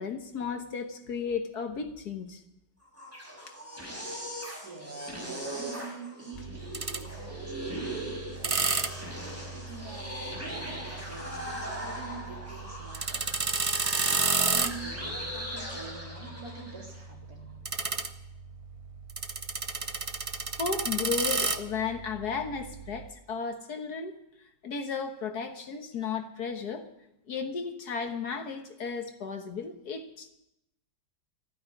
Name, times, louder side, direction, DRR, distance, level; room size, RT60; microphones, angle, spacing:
voice 1, 0.0-2.4 3.5-3.6 20.6-24.2 24.6-26.9 27.3-30.3, left 5 dB, 60° left, 6 dB, 1.7 m, -34 dB
sound 1, 2.8-17.0, right 1 dB, 10° right, 5.1 m, -40 dB
voice 2, 4.6-17.5, right 3 dB, 55° right, -2 dB, 4.2 m, -46 dB
sound 2, 6.3-23.1, right 4 dB, 40° right, 0.4 m, -33 dB
15.0 x 9.5 x 9.9 m, 0.84 s
omnidirectional pair, 1.9 m